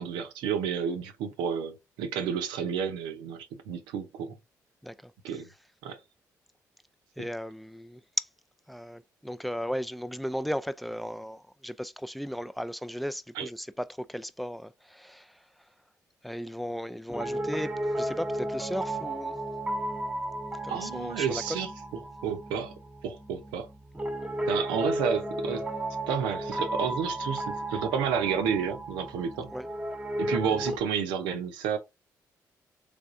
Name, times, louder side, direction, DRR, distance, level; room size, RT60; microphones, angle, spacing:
voice 1, 0.0-4.3 5.2-5.5 5.8-6.0 13.4-13.5 20.7-21.7 22.2-22.8 23.0-23.7 24.5-25.6 26.1-29.5 30.2-31.8, right 7 dB, 85° right, 0.7 m, -30 dB
voice 2, 4.8-5.4 7.2-8.3 8.7-15.5 16.2-19.4 20.6-21.4 29.5-29.7, equal, ahead, 0.4 m, -36 dB
Piano, 17.1-30.8, right 1 dB, 15° right, 1.0 m, -34 dB
3.4 x 3.3 x 2.5 m
supercardioid pair, 60°, 8 cm